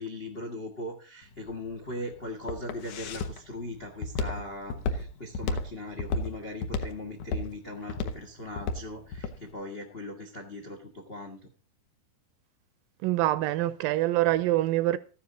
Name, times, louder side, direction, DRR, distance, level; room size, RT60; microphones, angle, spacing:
voice 1, 0.0-11.5, left 1 dB, 80° left, 0.5 m, -39 dB
Walk footsteps, 1.2-9.4, left 3 dB, 65° left, 2.1 m, -33 dB
voice 2, 13.0-15.0, right 15 dB, 80° right, 2.2 m, -25 dB
13.5 x 9.7 x 3.9 m
omnidirectional pair, 4.2 m